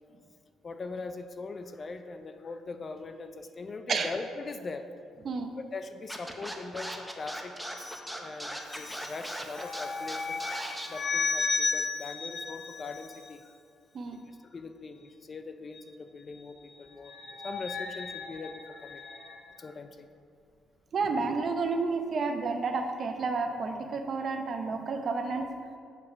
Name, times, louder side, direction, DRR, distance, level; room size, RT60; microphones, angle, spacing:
voice 1, 0.6-4.9 5.6-13.6 14.5-17.2 17.4-19.0 19.6-20.1, left 3 dB, 30° left, 8 dB, 0.4 m, -41 dB
Scratching (performance technique), 6.1-10.9, equal, ahead, 0.8 m, -38 dB
sound 1, 7.6-13.3 15.7-15.8 16.2-19.5 23.7-24.0, left 4 dB, 50° left, 1.8 m, -35 dB
voice 2, 20.9-25.5, right 4 dB, 45° right, 5 dB, 0.7 m, -30 dB
7.1 x 5.5 x 5.6 m, 2.3 s
cardioid pair, 125°, 0 cm